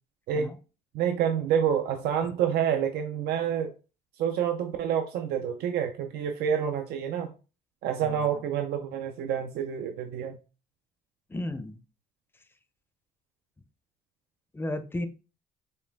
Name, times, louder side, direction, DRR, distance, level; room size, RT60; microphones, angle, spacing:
voice 1, 0.9-3.7 4.2-7.3 7.8-10.4, right 8 dB, 70° right, 5 dB, 0.5 m, -28 dB
voice 2, 11.3-11.8 14.5-15.1, left 1 dB, 15° left, 10 dB, 0.6 m, -33 dB
5.3 x 2.3 x 3.5 m, 0.33 s
cardioid pair, 110°, 17 cm